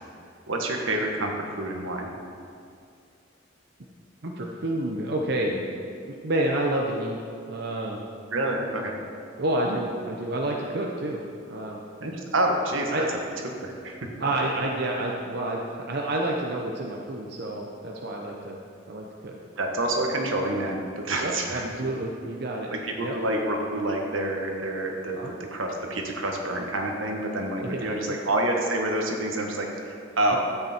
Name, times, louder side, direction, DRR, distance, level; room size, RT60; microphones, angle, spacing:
voice 1, 0.5-2.1 8.3-9.0 12.0-13.0 13.6-14.0 19.6-21.7 22.7-30.4, right 1 dB, 80° right, 1 dB, 1.5 m, -28 dB
voice 2, 4.2-5.7 6.1-7.2 7.5-8.0 9.4-11.2 11.5-11.8 12.9-13.0 14.2-18.6 18.9-19.4 21.2-22.7 23.0-23.2 25.1-25.3 27.6-27.9 30.3-30.4, right 1 dB, 55° right, -1 dB, 0.8 m, -29 dB
13.0 x 8.2 x 4.4 m, 2.4 s
head